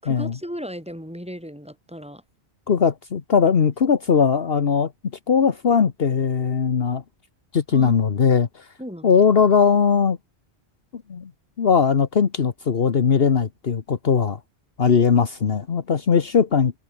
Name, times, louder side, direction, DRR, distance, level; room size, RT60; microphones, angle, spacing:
voice 1, 0.0-2.2 7.7-8.0 8.8-9.1, equal, 5° right, 7.8 m, -36 dB
voice 2, 2.7-4.9 5.3-7.0 7.5-8.6 9.0-10.2 10.9-11.3 11.6-14.4 14.8-16.7, left 6 dB, 60° left, 1.4 m, -19 dB
omnidirectional pair, 1.1 m